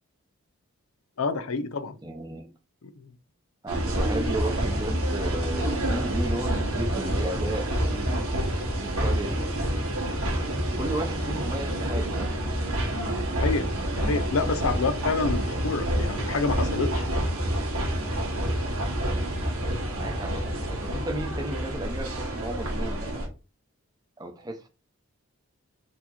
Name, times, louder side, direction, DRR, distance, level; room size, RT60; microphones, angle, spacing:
voice 1, 1.2-2.0 2.8-3.1 13.4-13.7 14.0-17.1, left 4 dB, 75° left, 0.5 m, -28 dB
voice 2, 2.0-2.5 3.6-8.2 8.8-9.7 10.8-12.3 19.9-23.3 24.2-24.7, right 1 dB, 15° right, 0.6 m, -34 dB
sound 1, 3.7-23.3, right 1 dB, 80° right, 1.6 m, -28 dB
4.6 x 2.8 x 4.1 m
head